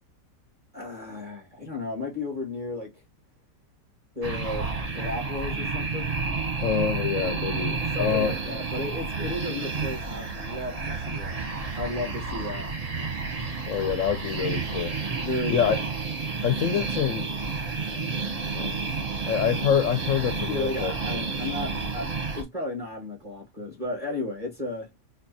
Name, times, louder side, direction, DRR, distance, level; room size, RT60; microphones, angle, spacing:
voice 1, 0.7-3.0 4.1-6.1 7.8-11.5 11.7-12.8 15.2-15.8 20.5-24.9, left 2 dB, 25° right, 1.5 m, -34 dB
sound 1, 4.2-22.4, right 4 dB, 45° right, 0.5 m, -30 dB
voice 2, 6.6-8.3 13.7-14.9 15.5-15.8 16.4-17.3 17.9-18.8 19.2-20.9, left 8 dB, 65° left, 0.8 m, -26 dB
4.3 x 2.7 x 2.6 m
omnidirectional pair, 1.8 m